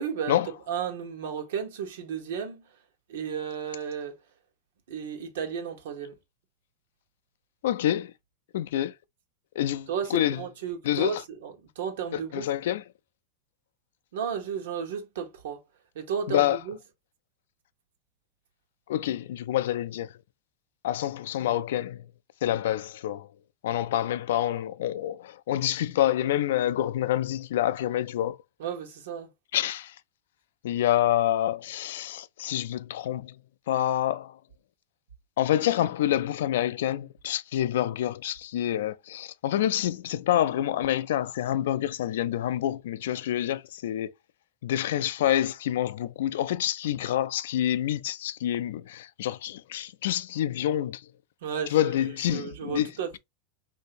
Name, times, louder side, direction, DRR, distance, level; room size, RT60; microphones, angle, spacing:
voice 1, 0.0-0.4 0.7-2.6 3.1-4.2 4.9-6.1 9.9-12.5 14.1-15.6 15.9-16.8 28.6-29.3 51.4-51.9 52.3-53.2, right 7 dB, 80° right, 1.0 m, -33 dB
voice 2, 7.6-8.1 8.5-8.9 9.6-10.4 10.8-11.2 12.1-12.8 16.3-16.6 18.9-20.1 20.8-22.1 22.4-23.3 23.6-28.4 29.5-29.9 30.6-33.3 33.7-34.4 35.4-44.1 44.6-51.0 51.7-53.2, left 12 dB, 80° left, 0.3 m, -27 dB
3.3 x 2.7 x 2.8 m
supercardioid pair, 165°, 0 cm